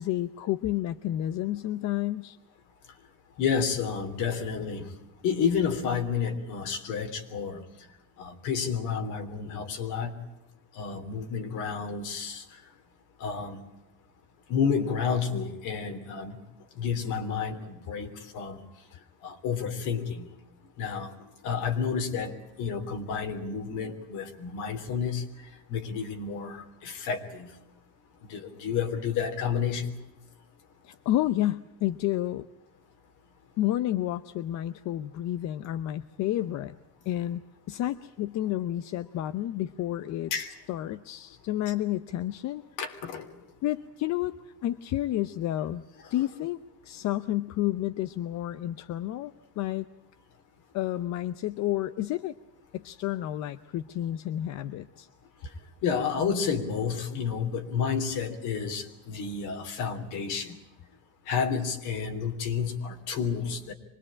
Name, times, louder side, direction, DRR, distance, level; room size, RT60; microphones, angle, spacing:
voice 1, 0.0-2.4 30.8-32.4 33.6-36.8 37.1-37.4 37.7-40.3 40.7-42.6 43.6-45.8 46.1-46.6 46.8-49.9 50.7-52.3 52.7-55.1, left 13 dB, 65° left, 12 dB, 0.8 m, -30 dB
voice 2, 3.4-4.9 5.2-7.6 8.2-10.2 10.7-12.6 13.2-13.6 14.5-16.4 16.7-18.6 19.2-20.3 20.8-21.1 21.4-25.2 25.7-27.5 28.3-30.0 40.3-40.5 42.8-43.3 46.0-46.1 55.8-60.5 61.3-63.7, left 6 dB, 80° left, 5 dB, 3.4 m, -30 dB
25.0 x 20.5 x 8.7 m, 0.95 s
cardioid pair, 145°, 30 cm